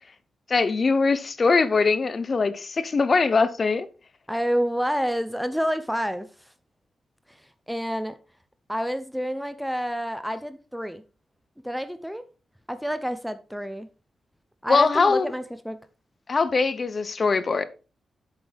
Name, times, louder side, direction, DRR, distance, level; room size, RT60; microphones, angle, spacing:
voice 1, 0.5-3.9 14.7-15.3 16.3-17.6, left 4 dB, 40° left, 0.8 m, -22 dB
voice 2, 4.3-6.3 7.3-7.4 7.7-8.2 8.7-11.0 11.6-12.2 12.7-13.9 14.6-15.8, equal, ahead, 0.6 m, -28 dB
8.1 x 6.8 x 3.4 m
cardioid pair, 90°, 0 cm